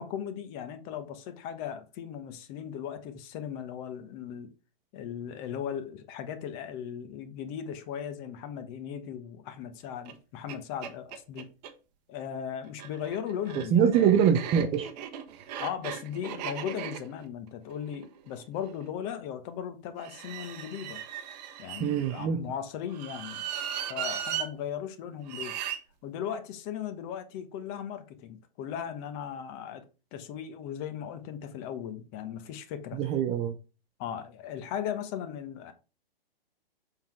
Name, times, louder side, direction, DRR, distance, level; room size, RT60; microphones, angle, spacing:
voice 1, 0.0-4.5 4.9-11.5 12.1-14.1 15.6-21.0 21.6-23.4 23.9-25.6 26.0-29.8 30.1-33.0 34.0-35.7, left 9 dB, 35° left, 1.1 m, -37 dB
sound 1, 10.1-10.2 10.5-10.6 10.8-11.7 12.7-18.8 20.0-22.3 22.9-24.5 25.3-25.8, right 9 dB, 45° right, 1.0 m, -38 dB
voice 2, 13.6-14.9 21.8-22.4 32.9-33.5, right 8 dB, 20° right, 0.5 m, -24 dB
7.2 x 3.9 x 4.5 m
hypercardioid pair, 135°, 30 cm